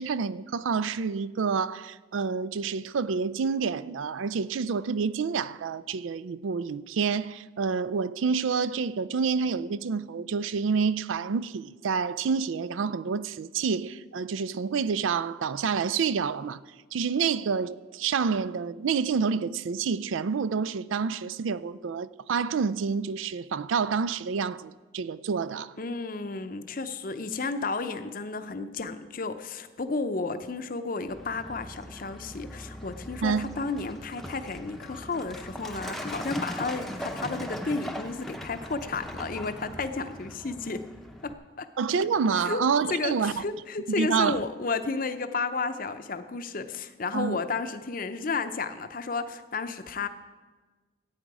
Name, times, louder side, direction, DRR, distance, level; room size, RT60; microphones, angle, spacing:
voice 1, 0.0-16.6 16.9-25.7 33.2-33.5 41.8-43.4 44.0-44.4 47.1-47.4, right 5 dB, 90° right, 0.4 m, -28 dB
voice 2, 25.8-40.9 41.2-41.7 42.4-42.6 42.9-50.1, left 4 dB, 45° left, 0.6 m, -32 dB
Truck, 31.1-41.3, equal, ahead, 0.7 m, -40 dB
14.0 x 9.2 x 4.8 m
head